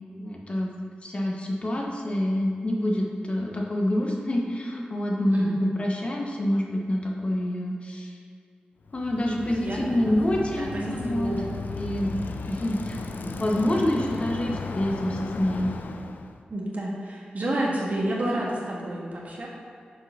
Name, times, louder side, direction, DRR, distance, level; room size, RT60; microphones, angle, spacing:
voice 1, 0.2-0.7 1.0-8.2 8.9-11.3 11.7-15.7, left 1 dB, 40° left, -1 dB, 1.1 m, -27 dB
voice 2, 5.3-5.7 9.5-11.6 16.5-19.5, right 1 dB, 55° right, -4 dB, 1.8 m, -30 dB
Bicycle, 8.9-16.4, left 4 dB, 75° left, 0.5 m, -36 dB
6.8 x 5.2 x 5.6 m, 2.3 s
wide cardioid pair, 80°, 3 cm